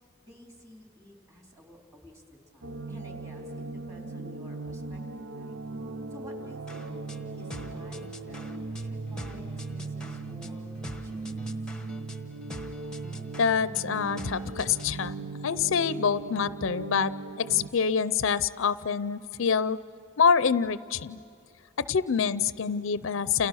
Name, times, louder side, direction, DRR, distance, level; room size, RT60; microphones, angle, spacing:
voice 1, 0.2-5.6 6.1-7.0 7.4-11.8, equal, 15° right, 1 dB, 3.8 m, -51 dB
sound 1, 2.6-17.7, right 3 dB, 85° right, 0.8 m, -38 dB
sound 2, 6.7-15.0, left 1 dB, 5° left, 1.1 m, -46 dB
voice 2, 13.4-17.1 17.4-19.8 20.2-21.2 21.9-23.5, left 6 dB, 65° left, 15 dB, 0.5 m, -26 dB
30.0 x 29.5 x 6.3 m, 2.6 s
head